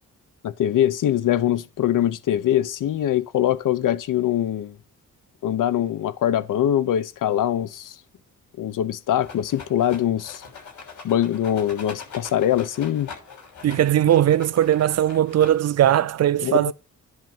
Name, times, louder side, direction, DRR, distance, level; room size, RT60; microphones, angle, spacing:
voice 1, 0.4-4.8 5.4-8.0 8.6-10.4 11.0-13.1 16.4-16.7, left 11 dB, 85° left, 0.9 m, -23 dB
Rattle, 9.2-15.9, left 5 dB, 65° left, 6.2 m, -42 dB
voice 2, 13.6-16.7, right 11 dB, 55° right, 0.6 m, -19 dB
10.5 x 4.0 x 7.3 m
wide cardioid pair, 140°, 31 cm